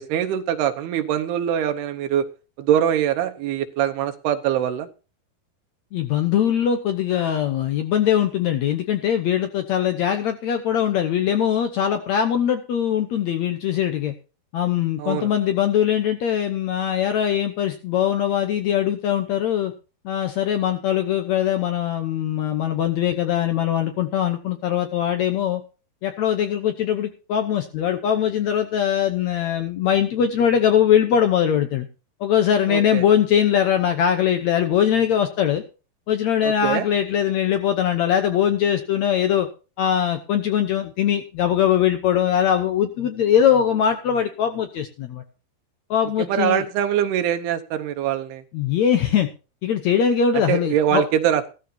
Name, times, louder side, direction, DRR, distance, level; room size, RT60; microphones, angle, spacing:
voice 1, 0.0-2.3 2.6-4.9 15.0-15.3 32.7-33.0 36.4-36.8 46.2-48.4 50.5-51.5, right 10 dB, 85° right, 7 dB, 3.0 m, -23 dB
voice 2, 5.9-14.1 14.5-19.7 20.0-25.6 26.0-31.8 32.2-35.6 36.1-39.5 39.8-45.2 45.9-46.6 48.5-49.3 49.6-51.1, left 9 dB, 80° left, 6 dB, 1.6 m, -21 dB
16.0 x 13.5 x 2.8 m, 0.33 s
omnidirectional pair, 4.6 m